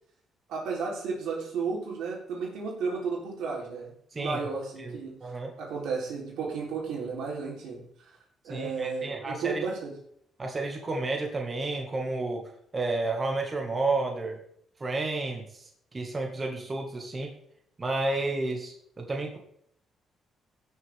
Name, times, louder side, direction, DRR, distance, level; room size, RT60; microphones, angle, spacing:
voice 1, 0.5-5.1 5.6-7.8 8.4-9.9, right 5 dB, 85° right, -2 dB, 3.9 m, -33 dB
voice 2, 4.8-5.5 8.5-9.7 10.4-12.4 12.7-14.4 14.8-15.6 15.9-17.3 17.8-19.4, right 2 dB, 30° right, 1 dB, 2.1 m, -31 dB
16.5 x 6.8 x 3.7 m, 0.68 s
cardioid pair, 90°, 0 cm